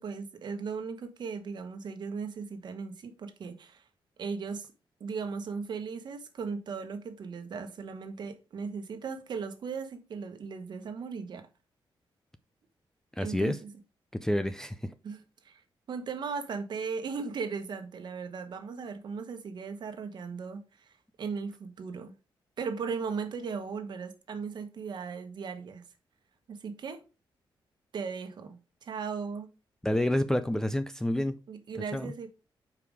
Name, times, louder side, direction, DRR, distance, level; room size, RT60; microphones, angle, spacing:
voice 1, 0.0-3.9 4.2-4.7 5.0-11.5 13.2-13.7 15.0-22.1 22.6-25.8 26.5-27.0 27.9-29.5 31.5-32.3, right 5 dB, 55° right, 1.2 m, -37 dB
voice 2, 13.2-13.6 14.1-14.9 29.8-31.4 31.9-32.1, left 1 dB, 5° left, 0.4 m, -28 dB
5.4 x 4.8 x 4.8 m
wide cardioid pair, 150°, 9 cm